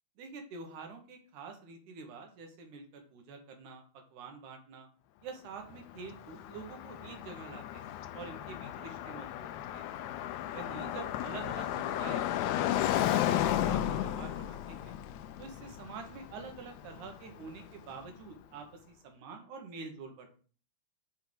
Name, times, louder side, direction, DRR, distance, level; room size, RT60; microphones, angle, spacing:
voice 1, 0.2-3.8 4.1-4.9 5.2-9.9 10.5-15.0 15.4-20.3, right 4 dB, 80° right, 4 dB, 2.7 m, -47 dB
Car passing by, 5.7-17.7, left 12 dB, 80° left, 1.9 m, -34 dB
7.3 x 3.4 x 5.3 m, 0.41 s
omnidirectional pair, 3.5 m